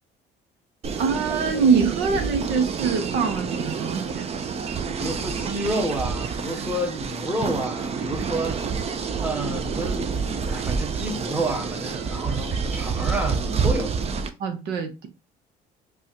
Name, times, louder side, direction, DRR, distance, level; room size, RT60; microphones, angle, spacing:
sound 1, 0.8-14.3, right 5 dB, 40° right, 0.6 m, -28 dB
voice 1, 1.0-4.3 14.4-15.1, right 5 dB, 85° right, 1.0 m, -24 dB
voice 2, 5.0-8.6 9.2-13.9, right 1 dB, 10° right, 1.1 m, -30 dB
5.4 x 2.4 x 2.9 m
cardioid pair, 110°, 17 cm